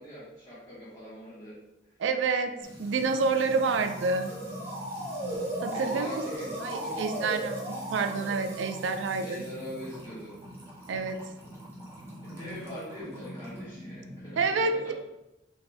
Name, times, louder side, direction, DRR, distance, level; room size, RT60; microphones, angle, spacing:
voice 1, 0.0-1.5 5.7-7.4 9.2-10.3 12.2-14.9, equal, 20° left, -13 dB, 1.1 m, -42 dB
voice 2, 2.0-2.5 2.8-4.3 5.6-6.1 6.6-9.4 10.9-11.2 14.4-14.9, right 4 dB, 85° right, 8 dB, 0.4 m, -28 dB
Music / Water tap faucet / Trickle dribble, 2.6-14.4, right 1 dB, 15° right, 1.3 m, -44 dB
Motor vehicle (road) / Siren, 3.4-9.2, right 1 dB, 40° right, 0.6 m, -37 dB
4.1 x 2.5 x 3.3 m, 0.93 s
head